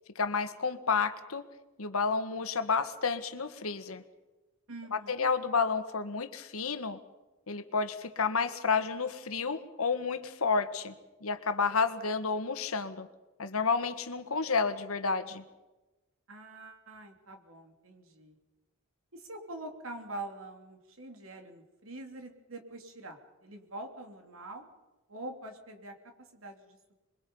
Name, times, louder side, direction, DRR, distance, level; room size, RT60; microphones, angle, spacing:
voice 1, 0.1-1.4 1.8-4.0 4.9-7.0 7.5-10.9 11.2-13.1 13.4-15.4, left 5 dB, 85° left, 10 dB, 1.5 m, -30 dB
voice 2, 4.7-5.3 16.3-18.4 19.1-24.7 25.1-26.9, right 2 dB, 70° right, 4 dB, 3.1 m, -45 dB
26.5 x 22.5 x 5.5 m, 1.1 s
head